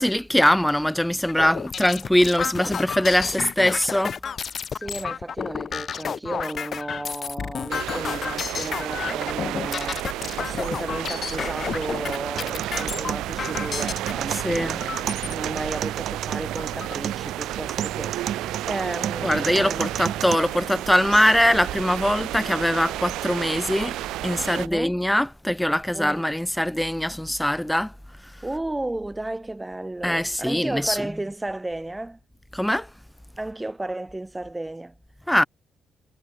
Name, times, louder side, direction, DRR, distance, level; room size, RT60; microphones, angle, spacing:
voice 1, 0.0-4.2 14.3-14.8 19.2-24.0 24.2-27.9 30.0-31.2 32.5-32.9 35.3-35.5, equal, 5° left, 0.5 m, -22 dB
sound 1, 1.3-14.1 14.8-15.3 15.9-16.0 16.3-16.9, left 7 dB, 50° left, 1.8 m, -31 dB
voice 2, 4.7-18.3 18.7-19.8 24.5-25.0 25.9-26.2 28.4-32.2 33.4-34.9, right 2 dB, 15° right, 2.9 m, -33 dB
sound 2, 7.7-24.7, right 15 dB, 90° right, 1.9 m, -32 dB
sound 3, 12.4-20.3, right 9 dB, 65° right, 1.7 m, -33 dB
cardioid pair, 90°, 0 cm